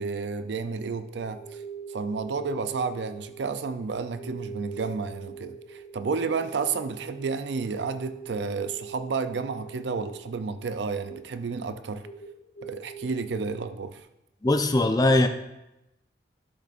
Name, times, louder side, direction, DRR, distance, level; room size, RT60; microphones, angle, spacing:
voice 1, 0.0-1.6 1.9-12.1 12.6-14.1, right 4 dB, 65° right, 11 dB, 0.4 m, -31 dB
sound 1, 1.0-13.4, right 6 dB, 50° left, 1.6 m, -43 dB
voice 2, 14.4-15.3, left 2 dB, 20° left, 7 dB, 0.5 m, -20 dB
12.0 x 6.6 x 2.5 m, 0.91 s
head